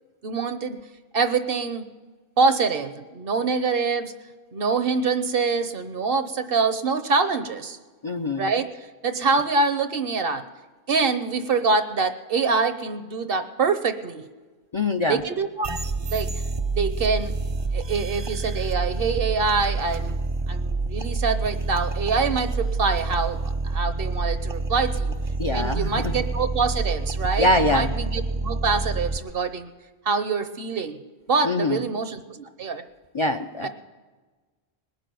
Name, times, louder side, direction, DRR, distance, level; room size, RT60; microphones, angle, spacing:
voice 1, 0.2-0.8 1.1-1.8 2.4-4.1 4.5-7.8 8.4-8.7 9.0-10.4 10.9-14.2 15.1-15.7 16.1-16.3 16.7-17.3 17.7-20.1 20.5-25.2 25.5-29.7 30.1-31.0 31.3-32.8 33.6-33.7, right 4 dB, 60° right, 10 dB, 1.0 m, -25 dB
voice 2, 8.0-8.5 14.7-15.2 25.4-26.1 27.4-27.9 31.4-31.8 33.1-33.7, left 2 dB, 35° left, 6 dB, 0.5 m, -23 dB
sound 1, 15.6-29.2, right 3 dB, 35° right, 0.5 m, -28 dB
20.0 x 6.8 x 9.2 m, 1.3 s
omnidirectional pair, 1.1 m